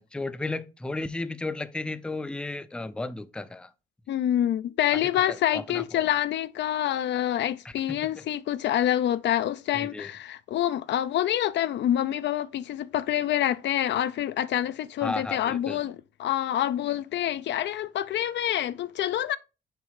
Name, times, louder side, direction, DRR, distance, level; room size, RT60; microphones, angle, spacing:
voice 1, 0.0-3.7 5.5-6.0 9.7-10.1 15.0-15.8, left 2 dB, 5° left, 0.4 m, -34 dB
voice 2, 4.1-19.4, left 11 dB, 65° left, 0.4 m, -27 dB
6.7 x 3.1 x 4.8 m
cardioid pair, 90°, 20 cm